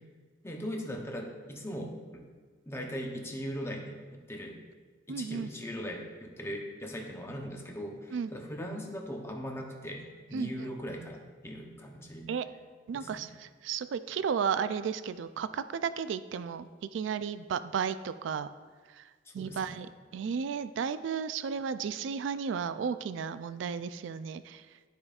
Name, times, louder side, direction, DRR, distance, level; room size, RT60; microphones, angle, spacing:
voice 1, 0.4-2.3 2.7-4.0 4.3-4.6 5.1-12.3 12.9-13.2 19.3-19.8, equal, 15° left, 2 dB, 0.7 m, -39 dB
voice 2, 5.1-5.5 8.1-8.3 10.3-10.7 12.3-12.5 12.9-18.5 19.0-19.1 19.3-24.6, right 6 dB, 80° right, 12 dB, 0.3 m, -34 dB
12.0 x 5.0 x 2.4 m, 1.5 s
head